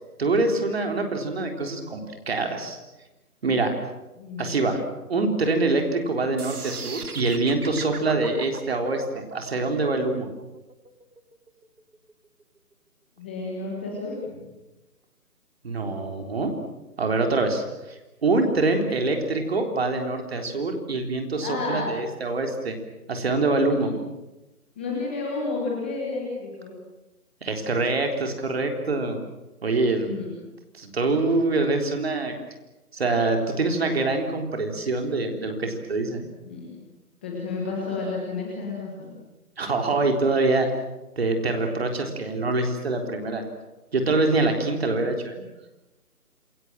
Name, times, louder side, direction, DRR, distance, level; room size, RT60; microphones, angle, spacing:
voice 1, 0.2-2.8 3.4-3.7 4.4-4.8 5.1-10.3 15.6-16.5 17.0-22.8 23.1-23.9 27.4-29.2 29.6-30.1 30.7-32.3 32.9-36.2 39.6-40.7 41.2-43.4 43.9-45.4, right 3 dB, 40° right, 4 dB, 3.9 m, -25 dB
voice 2, 4.2-4.5 13.2-14.4 18.8-19.3 21.4-22.0 23.7-24.0 24.8-26.7 30.0-30.3 36.2-36.7 37.2-39.1, left 3 dB, 5° left, -3 dB, 1.4 m, -31 dB
sound 1, 6.4-12.4, right 4 dB, 75° right, 2.8 m, -38 dB
27.5 x 21.5 x 7.7 m, 1.0 s
hypercardioid pair, 170°, 46 cm